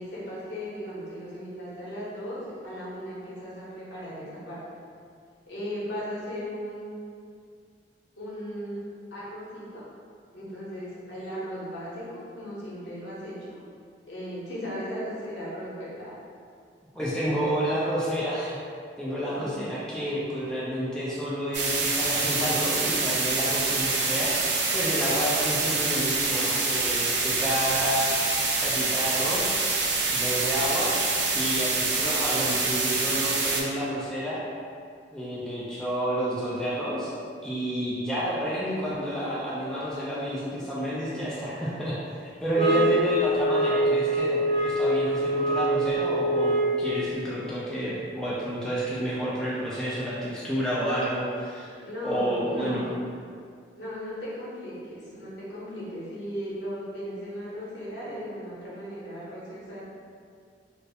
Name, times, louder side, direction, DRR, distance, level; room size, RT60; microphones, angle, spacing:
voice 1, 0.0-4.6 5.5-6.9 8.2-8.8 9.1-9.8 10.3-13.6 14.1-16.1 19.5-19.7 51.7-53.0 53.7-59.8, equal, 70° left, -8 dB, 0.8 m, -37 dB
voice 2, 16.9-18.6 19.0-24.4 24.7-28.2 28.6-29.8 30.1-31.0 31.3-34.4 35.1-37.1 37.4-51.7 52.0-52.8, equal, 5° left, -9 dB, 0.3 m, -30 dB
sound 1, 21.5-33.6, right 3 dB, 75° right, 0.4 m, -26 dB
sound 2, 42.5-46.9, right 1 dB, 30° left, 0.7 m, -24 dB
2.4 x 2.0 x 2.7 m, 2.2 s
head